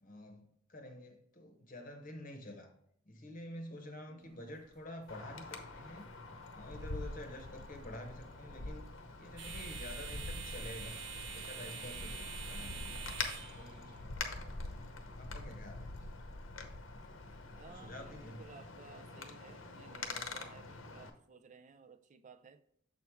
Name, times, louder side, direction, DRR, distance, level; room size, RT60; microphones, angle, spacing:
voice 1, 0.0-2.7 3.1-6.1 6.5-8.9 9.2-11.0 11.3-12.2 12.5-12.9 13.5-14.1 15.1-15.9 17.7-18.4, left 1 dB, 40° left, 0.9 m, -49 dB
voice 2, 4.1-4.5 7.7-8.0 12.6-13.2 17.5-22.6, right 4 dB, 35° right, 0.4 m, -57 dB
sound 1, 4.2-15.5, right 6 dB, 60° right, 0.8 m, -49 dB
Wind, 5.1-21.1, left 3 dB, 75° left, 0.8 m, -45 dB
6.9 x 4.6 x 3.5 m
head